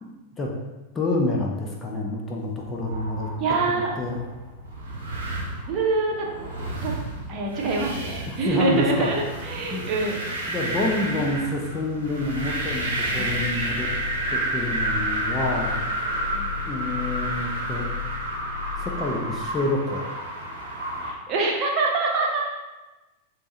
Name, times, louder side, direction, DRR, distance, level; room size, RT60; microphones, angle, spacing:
voice 1, 0.9-3.3 3.7-4.2 8.3-9.1 9.7-9.8 10.5-13.9 14.3-15.8 16.7-17.9 18.8-20.0, left 2 dB, 20° left, -1 dB, 0.5 m, -28 dB
sound 1, 2.6-21.1, right 2 dB, 65° right, 0.7 m, -31 dB
voice 2, 3.4-3.9 5.7-6.3 6.8-6.9 7.3-10.2 16.3-16.6 21.0-22.5, right 3 dB, 35° right, -2 dB, 0.7 m, -25 dB
sound 2, 11.9-19.7, left 6 dB, 85° left, 0.4 m, -36 dB
3.4 x 2.1 x 3.9 m, 1.1 s
figure-of-eight pair, 90°, 0 cm